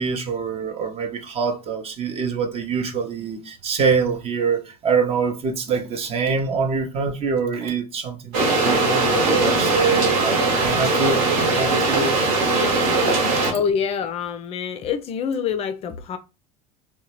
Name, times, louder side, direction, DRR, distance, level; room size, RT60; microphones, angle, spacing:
voice 1, 0.0-12.3 13.0-13.1, right 5 dB, 30° right, 0.6 m, -25 dB
sound 1, 8.3-13.5, right 3 dB, 55° right, 1.0 m, -20 dB
voice 2, 13.5-16.2, left 7 dB, 30° left, 0.3 m, -26 dB
2.7 x 2.1 x 2.9 m
figure-of-eight pair, 70°, 19 cm